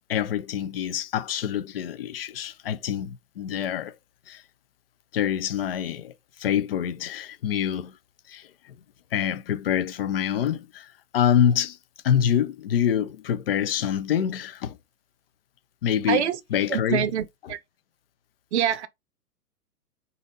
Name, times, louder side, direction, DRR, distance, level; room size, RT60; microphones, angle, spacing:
voice 1, 0.0-4.0 4.3-4.4 5.1-6.1 6.4-8.0 8.3-8.8 9.1-11.8 12.0-14.8 15.8-16.2 16.5-17.0, left 9 dB, 40° left, 0.4 m, -26 dB
voice 2, 16.1-16.4 16.7-17.6 18.5-18.9, right 9 dB, 45° right, 0.6 m, -25 dB
4.0 x 2.7 x 3.8 m
hypercardioid pair, 125°, 48 cm